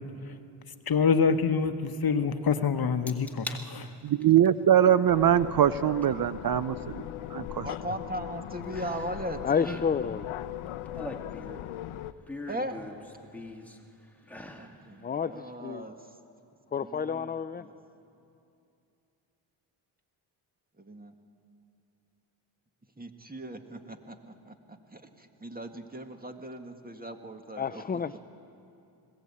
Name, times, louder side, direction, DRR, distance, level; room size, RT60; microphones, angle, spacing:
voice 1, 0.9-3.9, left 5 dB, 45° left, 9 dB, 1.1 m, -26 dB
sound 1, 3.1-3.6 4.1-4.5 6.0-6.1 8.7-9.3 9.5-9.9 10.7-11.7 12.3-13.8 14.2-14.7 15.1-15.2, left 2 dB, 5° left, 1.9 m, -41 dB
voice 2, 4.0-7.0 7.3-7.6, right 10 dB, 45° right, 15 dB, 0.6 m, -22 dB
sound 2, 5.1-12.1, left 13 dB, 80° left, 0.7 m, -39 dB
voice 3, 7.6-9.4 12.5-12.8 14.5-16.2 16.8-17.7 20.8-21.2 23.0-27.8, right 1 dB, 20° right, 6 dB, 1.9 m, -39 dB
voice 4, 9.4-10.3 15.0-15.8 16.7-17.7 27.6-28.2, left 6 dB, 20° left, 13 dB, 0.4 m, -30 dB
20.5 x 16.5 x 8.5 m, 2.6 s
supercardioid pair, 60°, 49 cm